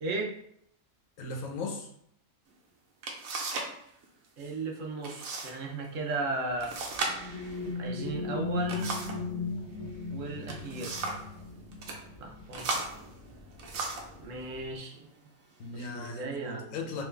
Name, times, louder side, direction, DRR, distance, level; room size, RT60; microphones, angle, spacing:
voice 1, 0.0-0.3 4.4-6.7 7.8-8.9 10.1-11.2 12.2-12.8 14.2-15.1 15.7-16.8, right 3 dB, 70° right, 1 dB, 1.1 m, -36 dB
voice 2, 1.2-1.9 7.6-7.7 15.6-17.0, left 3 dB, 75° left, 2 dB, 1.1 m, -37 dB
sound 1, 2.5-2.6 3.0-3.8 4.0-4.5 5.0-5.5 5.8-5.9 6.6-9.3 10.2-11.3 11.7-12.0 12.5-14.2 14.9-15.1 15.6-16.1, right 3 dB, 90° right, 1.2 m, -36 dB
sound 2, 6.6-14.8, left 3 dB, 15° left, 1.3 m, -38 dB
3.6 x 3.1 x 3.3 m, 0.71 s
omnidirectional pair, 1.4 m